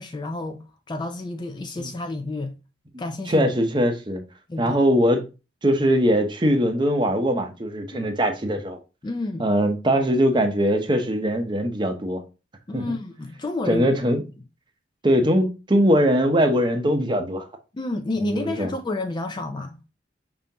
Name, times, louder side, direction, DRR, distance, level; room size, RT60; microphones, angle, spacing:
voice 1, 0.0-2.6 3.0-3.5 4.5-4.8 7.9-8.2 9.0-9.5 12.7-13.9 17.7-19.8, left 2 dB, 25° left, 0.4 m, -30 dB
voice 2, 3.3-4.2 4.6-5.2 5.6-8.8 9.4-12.2 12.7-12.9 13.7-14.2 15.0-17.5 18.2-18.7, equal, 25° right, 0.7 m, -21 dB
5.0 x 3.7 x 2.7 m
head